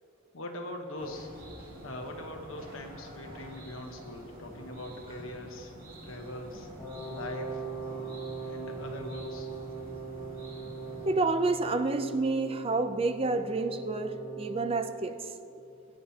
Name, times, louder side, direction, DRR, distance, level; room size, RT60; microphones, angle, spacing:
voice 1, 0.3-1.3 1.8-5.7 6.0-6.7 7.1-7.7 8.4-9.5, left 1 dB, 75° left, 2 dB, 1.1 m, -41 dB
sound 1, 1.0-11.1, right 1 dB, 45° right, 2.9 m, -47 dB
Wind instrument woodwind instrument, 6.8-14.8, right 5 dB, 5° left, 3.2 m, -40 dB
voice 2, 11.0-15.2, right 3 dB, 30° right, 9 dB, 0.5 m, -29 dB
21.5 x 8.9 x 2.8 m, 2.6 s
head